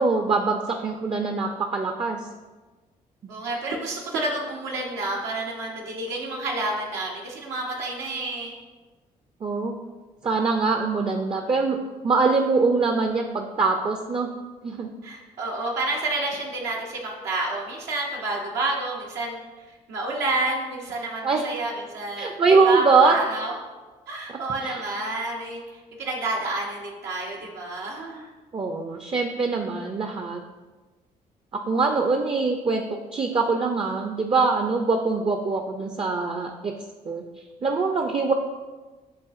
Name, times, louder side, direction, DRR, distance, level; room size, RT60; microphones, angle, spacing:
voice 1, 0.0-2.2 9.4-9.8 10.2-11.8 12.0-14.3 14.6-14.9 21.2-21.5 22.2-23.1 24.6-24.8 28.5-30.4 31.5-32.8 33.1-36.7 37.1-37.2 37.6-38.3, right 4 dB, 30° right, 4 dB, 0.4 m, -23 dB
voice 2, 3.3-8.5 15.0-23.5 24.1-28.3, right 2 dB, 80° right, -2 dB, 0.7 m, -29 dB
7.3 x 2.4 x 2.4 m, 1.3 s
hypercardioid pair, 50°, 18 cm